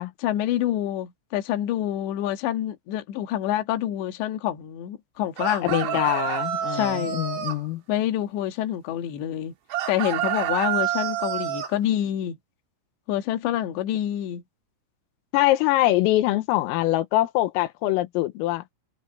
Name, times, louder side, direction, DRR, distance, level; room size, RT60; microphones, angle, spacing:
voice 1, 0.2-6.0 6.7-7.2 7.9-9.5 9.9-12.4 13.1-14.4, left 12 dB, 65° left, 3.7 m, -27 dB
sound 1, 5.4-7.6 9.7-11.7, right 12 dB, 60° right, 3.9 m, -28 dB
voice 2, 5.6-7.8 15.3-18.6, left 16 dB, 90° left, 3.8 m, -23 dB
omnidirectional pair, 6.0 m